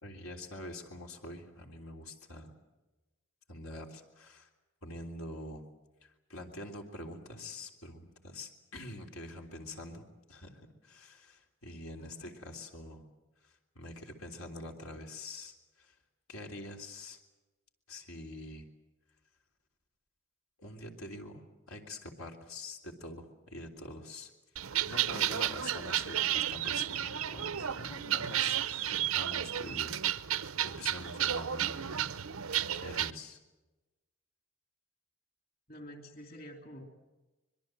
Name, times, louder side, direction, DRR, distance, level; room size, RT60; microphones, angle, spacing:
voice 1, 0.0-2.5 3.5-4.5 4.8-5.6 6.0-13.0 13.4-16.0 16.3-17.2 17.9-18.7 20.6-24.3 24.8-29.9 30.3-32.1 32.7-33.4, left 1 dB, 80° left, 2 dB, 3.5 m, -45 dB
voice 2, 12.0-12.3 25.1-25.4 26.1-26.4 35.7-36.8, equal, 45° left, 3 dB, 3.1 m, -49 dB
sound 1, 24.6-33.1, right 10 dB, 80° right, 0.8 m, -32 dB
25.0 x 22.5 x 7.7 m, 1.1 s
head